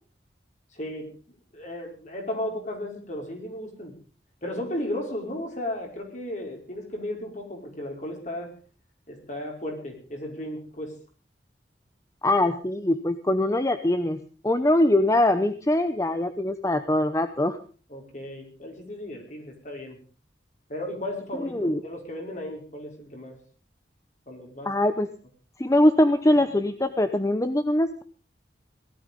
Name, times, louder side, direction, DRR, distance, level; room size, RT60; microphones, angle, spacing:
voice 1, 0.7-1.1 1.5-4.0 4.4-8.5 9.1-10.9 17.9-20.0 20.7-23.4 24.3-24.7, left 1 dB, 45° left, 1 dB, 5.2 m, -35 dB
voice 2, 12.2-14.2 14.4-17.6 21.5-21.8 24.6-25.1 25.6-28.0, left 1 dB, 20° left, 10 dB, 0.8 m, -22 dB
18.0 x 13.0 x 5.3 m, 0.39 s
head